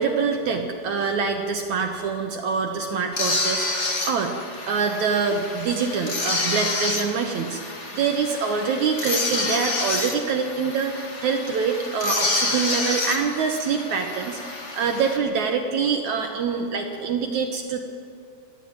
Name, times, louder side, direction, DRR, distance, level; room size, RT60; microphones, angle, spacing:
voice 1, 0.0-17.8, right 5 dB, 70° right, 4 dB, 1.8 m, -25 dB
sound 1, 3.1-15.2, left 2 dB, 85° left, 0.6 m, -28 dB
21.0 x 14.0 x 8.9 m, 2.5 s
omnidirectional pair, 4.7 m